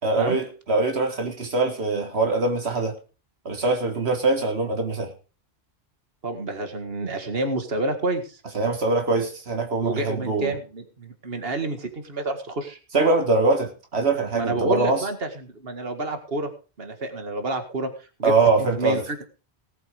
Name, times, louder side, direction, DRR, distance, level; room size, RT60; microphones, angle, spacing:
voice 1, 0.0-3.0 3.5-5.1 8.5-10.6 12.9-15.1 18.2-19.0, right 3 dB, 90° right, 4 dB, 2.1 m, -23 dB
voice 2, 6.2-8.4 9.8-12.8 14.3-16.5 16.8-17.9 18.2-18.3 18.6-19.2, right 2 dB, 65° right, 7 dB, 2.2 m, -29 dB
18.5 x 7.9 x 5.2 m, 0.34 s
omnidirectional pair, 1.1 m